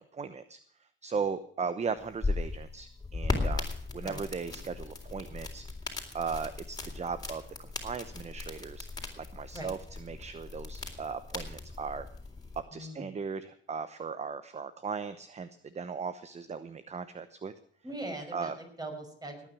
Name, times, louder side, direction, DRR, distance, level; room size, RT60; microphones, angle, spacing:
voice 1, 0.0-5.7 6.1-8.9 9.2-12.1 12.7-17.5 18.3-18.6, right 5 dB, 35° right, 13 dB, 0.9 m, -37 dB
sound 1, 2.0-12.6, left 3 dB, 20° left, 3.7 m, -37 dB
voice 2, 12.7-13.1 17.8-19.5, right 1 dB, 20° right, 4 dB, 5.7 m, -41 dB
18.5 x 9.2 x 6.2 m, 0.62 s
cardioid pair, 90°, 20 cm